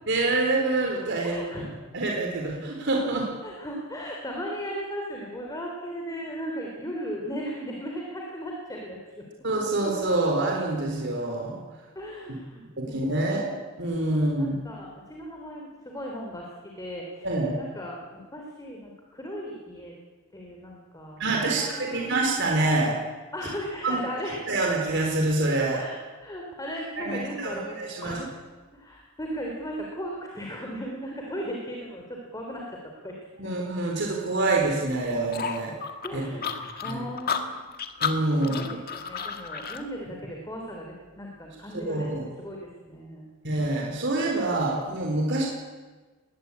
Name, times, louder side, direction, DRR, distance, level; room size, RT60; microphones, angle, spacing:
voice 1, 0.1-1.7 1.9-3.3 9.4-11.6 12.8-14.5 17.2-17.6 21.2-23.0 23.8-24.0 24.5-25.8 27.0-28.2 33.4-35.7 36.1-36.2 36.8-37.0 38.0-38.6 41.9-42.3 43.4-45.5, right 2 dB, 55° right, 0 dB, 4.2 m, -26 dB
voice 2, 1.2-1.7 3.4-9.3 12.0-13.4 14.4-17.3 17.6-20.0 20.3-22.1 23.3-24.4 25.7-27.8 28.0-28.3 28.7-33.5 36.0-37.8 38.4-43.3, equal, 15° left, -1 dB, 3.4 m, -37 dB
sound 1, 35.3-39.8, left 7 dB, 45° left, 1.9 m, -32 dB
21.0 x 20.0 x 8.6 m, 1.3 s
head